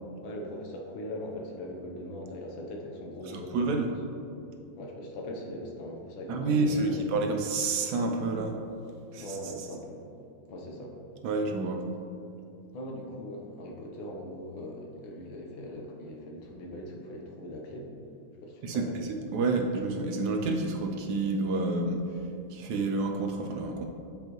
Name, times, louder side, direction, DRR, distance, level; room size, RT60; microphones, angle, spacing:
voice 1, 0.2-3.7 4.8-7.1 9.1-10.0 10.5-11.0 12.7-17.9 18.4-19.0, left 1 dB, 90° left, 0 dB, 1.6 m, -40 dB
voice 2, 3.3-3.9 6.3-8.5 9.1-9.4 11.2-11.8 18.6-23.9, right 3 dB, 75° right, 3 dB, 1.0 m, -29 dB
7.0 x 5.3 x 3.0 m, 2.6 s
omnidirectional pair, 2.1 m